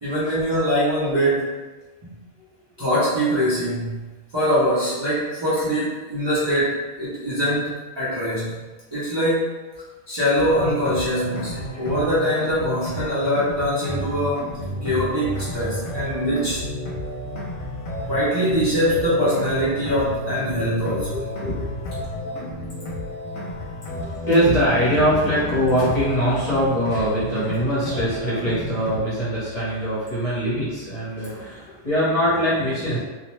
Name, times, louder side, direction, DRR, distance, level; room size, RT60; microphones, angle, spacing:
voice 1, 0.0-1.5 2.8-4.0 4.3-8.6 8.9-9.6 10.1-14.5 14.8-16.6 18.1-21.1, equal, 35° right, -12 dB, 0.5 m, -23 dB
sound 1, 10.4-29.0, equal, 75° left, 0.9 m, -32 dB
voice 2, 11.5-11.9 21.1-21.9 23.9-33.0, equal, 40° left, -10 dB, 0.8 m, -23 dB
sound 2, 14.7-24.3, left 3 dB, 55° right, 0.8 m, -38 dB
2.3 x 2.1 x 3.0 m, 1.2 s
omnidirectional pair, 1.3 m